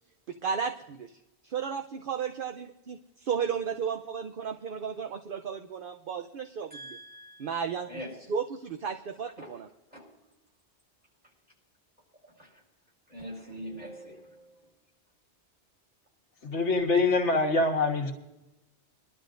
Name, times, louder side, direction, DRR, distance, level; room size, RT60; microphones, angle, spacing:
voice 1, 0.3-1.2 1.4-7.0 7.4-7.9 8.3-9.7, right 7 dB, 55° right, 5 dB, 0.8 m, -34 dB
voice 2, 6.7-8.1 9.4-9.6 9.9-10.1 12.2-12.6 13.1-14.7, equal, 35° right, -3 dB, 5.0 m, -44 dB
voice 3, 16.4-18.1, left 3 dB, 85° left, 1 dB, 1.7 m, -24 dB
23.5 x 12.0 x 2.5 m, 0.95 s
omnidirectional pair, 1.2 m